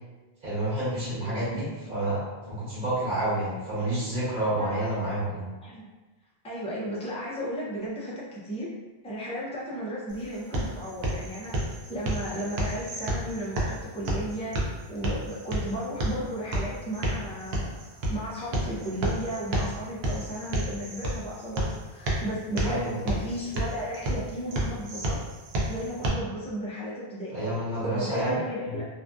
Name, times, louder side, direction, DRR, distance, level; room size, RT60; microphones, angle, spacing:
voice 1, 0.4-5.5 22.6-22.9 27.3-28.8, right 1 dB, 55° right, -11 dB, 1.1 m, -29 dB
voice 2, 1.2-1.8 4.6-4.7 5.6-5.9 6.4-8.7 9.0-14.6 14.9-17.7 18.1-25.2 25.7-27.4 27.8-28.9, equal, 10° left, -6 dB, 0.3 m, -34 dB
sound 1, 10.1-26.1, right 1 dB, 80° right, 0.8 m, -31 dB
2.5 x 2.4 x 2.3 m, 1.2 s
omnidirectional pair, 1.0 m